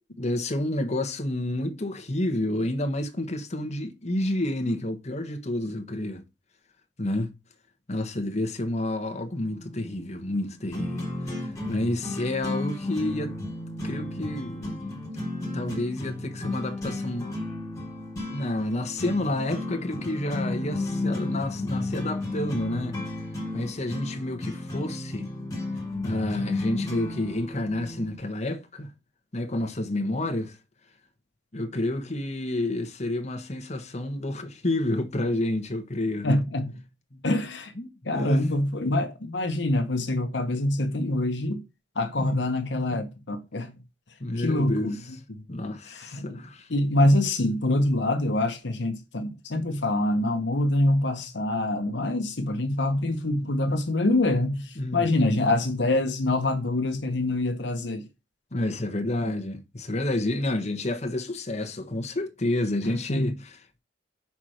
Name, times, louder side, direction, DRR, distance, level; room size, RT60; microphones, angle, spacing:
voice 1, 0.2-6.2 7.0-7.3 7.9-13.3 13.8-14.9 15.5-17.3 18.3-23.0 23.5-25.3 26.0-28.9 29.3-30.6 31.5-36.4 37.1-37.2 37.8-38.5 42.2-42.4 44.2-45.0 45.5-46.7 54.8-55.5 58.5-63.8, left 1 dB, 40° left, 1.3 m, -29 dB
sound 1, 9.3-28.1, left 2 dB, 20° left, 3.1 m, -33 dB
voice 2, 36.2-36.8 37.2-37.7 38.0-41.6 41.9-43.7 44.3-45.0 45.3-45.4 45.9-46.4 46.7-58.1 59.2-59.3 63.1-63.3, left 1 dB, 70° left, 1.0 m, -25 dB
5.9 x 4.5 x 6.3 m
head